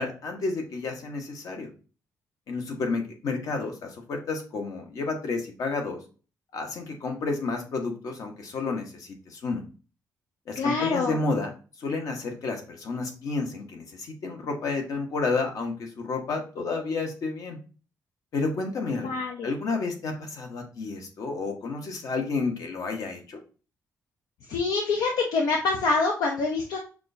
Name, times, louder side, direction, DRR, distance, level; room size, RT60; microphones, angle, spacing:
voice 1, 0.0-1.7 2.5-6.0 6.5-9.6 10.5-11.5 11.8-17.6 18.3-19.1 19.4-23.4, left 3 dB, 65° left, 3 dB, 1.1 m, -31 dB
voice 2, 10.5-11.2 19.0-19.5 24.5-26.8, left 3 dB, 85° left, 1 dB, 0.6 m, -26 dB
5.9 x 2.3 x 2.6 m, 0.35 s
cardioid pair, 110°, 6 cm